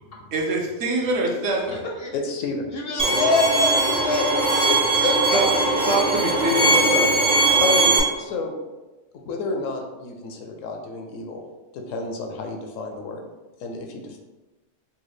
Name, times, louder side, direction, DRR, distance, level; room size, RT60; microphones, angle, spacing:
voice 1, 0.3-1.8 5.3-5.5 5.9-7.1, right 2 dB, 70° right, 0 dB, 1.0 m, -24 dB
voice 2, 2.1-2.7 2.9-3.2 7.6-8.5 9.3-11.4 11.7-13.3 13.6-14.2, left 3 dB, 80° left, 3 dB, 1.0 m, -30 dB
voice 3, 2.7-6.6, left 3 dB, 60° left, -1 dB, 0.7 m, -26 dB
Bowed string instrument, 3.0-8.0, right 2 dB, 10° right, 0.3 m, -20 dB
4.1 x 2.2 x 3.1 m, 1.1 s
omnidirectional pair, 1.3 m